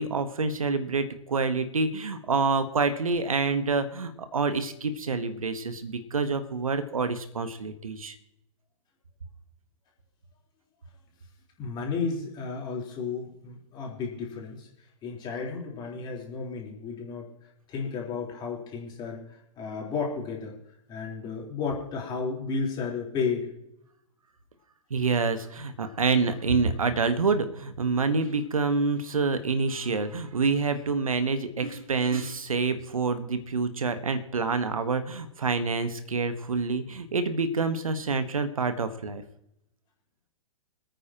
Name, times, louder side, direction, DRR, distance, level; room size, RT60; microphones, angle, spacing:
voice 1, 0.0-8.2 24.9-39.2, right 4 dB, 75° right, 10 dB, 1.3 m, -27 dB
voice 2, 11.6-14.7 15.0-17.3 17.7-20.5 20.9-23.5, left 5 dB, 25° left, -2 dB, 3.9 m, -33 dB
26.5 x 9.1 x 2.9 m, 0.80 s
figure-of-eight pair, 115°, 18 cm